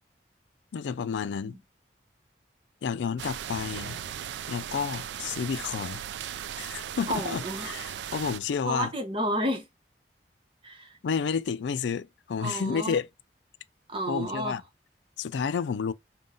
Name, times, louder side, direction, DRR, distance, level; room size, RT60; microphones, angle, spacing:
voice 1, 0.7-1.6 2.8-4.0 4.5-6.0 6.6-8.9 11.0-13.1 14.1-14.6 15.2-15.9, left 6 dB, 85° left, 0.4 m, -30 dB
sound 1, 3.2-8.4, right 9 dB, 80° right, 0.3 m, -37 dB
voice 2, 7.1-7.7 8.6-9.7 10.6-11.0 12.4-13.0 13.9-14.6, right 1 dB, 30° right, 1.0 m, -31 dB
3.8 x 2.2 x 3.7 m
head